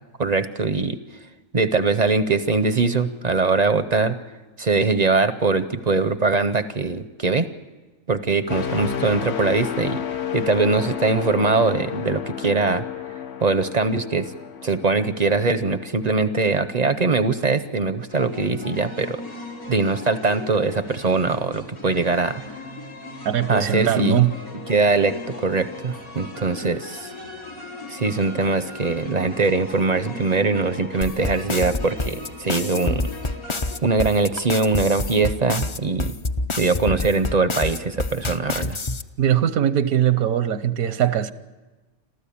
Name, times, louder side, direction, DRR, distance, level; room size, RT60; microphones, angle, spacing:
voice 1, 0.2-1.0 1.5-4.2 4.6-7.5 8.1-10.0 10.3-12.8 13.4-14.3 14.6-19.2 19.7-22.4 23.5-24.2 24.7-27.1 27.9-33.1 33.8-36.1 36.6-38.8, right 4 dB, 40° right, 0.6 m, -22 dB
sound 1, 8.5-16.3 16.8-17.0, left 9 dB, 55° left, 1.0 m, -31 dB
sound 2, 18.1-33.8, left 2 dB, 80° left, 4.0 m, -38 dB
voice 2, 23.2-24.4 26.6-26.7 39.2-41.3, right 10 dB, 80° right, 1.4 m, -20 dB
sound 3, 31.0-39.0, left 2 dB, 35° left, 0.5 m, -27 dB
26.5 x 14.5 x 8.6 m
omnidirectional pair, 1.5 m